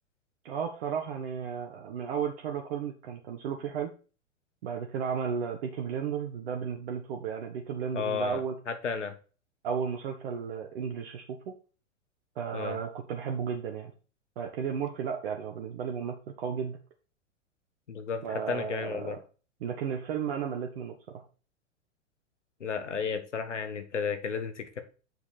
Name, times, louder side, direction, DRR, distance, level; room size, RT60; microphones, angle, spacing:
voice 1, 0.4-3.9 4.6-8.6 9.6-11.5 12.3-13.9 14.4-16.8 18.2-19.2 19.6-21.2, right 7 dB, 50° right, 2 dB, 1.5 m, -34 dB
voice 2, 7.9-9.2 12.5-12.8 17.9-19.2 22.6-24.8, left 6 dB, 70° left, 9 dB, 1.6 m, -33 dB
7.8 x 6.3 x 4.3 m, 0.35 s
figure-of-eight pair, 100°, 37 cm